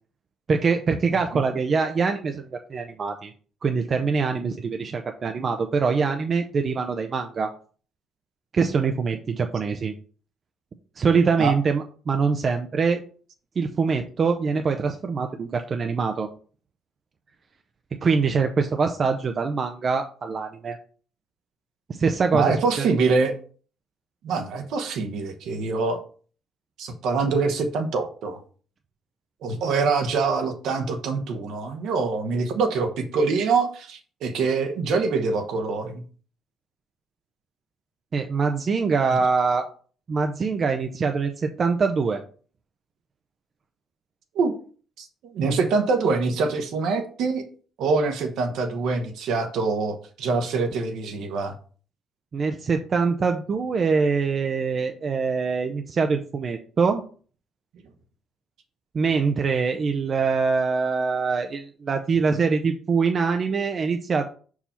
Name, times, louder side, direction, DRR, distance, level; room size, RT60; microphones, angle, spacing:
voice 1, 0.5-3.3 3.6-7.5 8.5-9.9 11.0-13.0 13.6-16.3 17.9-20.8 21.9-22.9 38.1-39.7 40.1-42.2 52.3-57.0 58.9-64.2, right 5 dB, 45° right, 5 dB, 0.7 m, -24 dB
voice 2, 22.3-23.3 24.2-26.0 26.8-28.4 29.4-36.0 44.3-44.5 45.0-47.4 47.8-51.5, right 4 dB, 70° right, 6 dB, 1.1 m, -24 dB
5.5 x 4.8 x 4.3 m, 0.41 s
hypercardioid pair, 50°, 0 cm